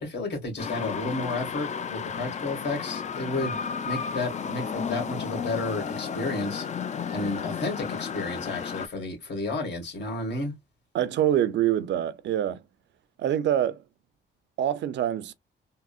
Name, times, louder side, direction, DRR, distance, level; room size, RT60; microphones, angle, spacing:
voice 1, 0.0-3.6 3.8-6.7 7.1-10.5, left 2 dB, 60° left, 1.7 m, -32 dB
sound 1, 0.6-8.9, left 6 dB, 35° left, 0.5 m, -33 dB
voice 2, 10.9-12.6 13.2-13.8 14.6-15.3, right 11 dB, 65° right, 0.5 m, -25 dB
3.7 x 2.0 x 2.3 m
cardioid pair, 90°, 20 cm